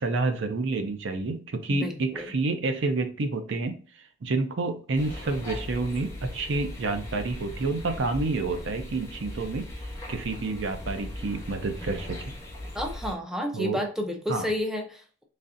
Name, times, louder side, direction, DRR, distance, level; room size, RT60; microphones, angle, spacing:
voice 1, 0.0-3.8 4.2-9.7 10.1-12.3 13.5-13.8 14.3-14.5, right 3 dB, 65° right, 7 dB, 0.5 m, -29 dB
voice 2, 1.7-2.3 12.7-15.2, left 1 dB, 5° right, 2 dB, 0.5 m, -31 dB
sound 1, 4.9-13.1, left 1 dB, 15° left, 1.0 m, -38 dB
4.0 x 3.2 x 2.5 m, 0.41 s
head